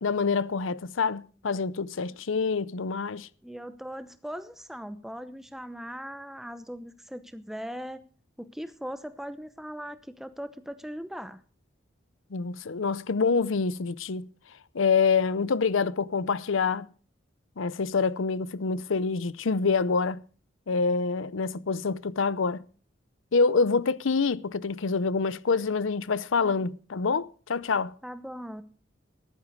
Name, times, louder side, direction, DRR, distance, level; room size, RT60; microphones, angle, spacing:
voice 1, 0.0-3.3 12.3-14.3 14.7-16.9 17.6-20.2 20.7-22.6 23.3-27.9, left 4 dB, 85° left, 0.6 m, -26 dB
voice 2, 3.4-8.0 8.4-11.4 26.4-26.7 28.0-28.6, equal, ahead, 0.8 m, -39 dB
14.0 x 11.5 x 5.2 m
head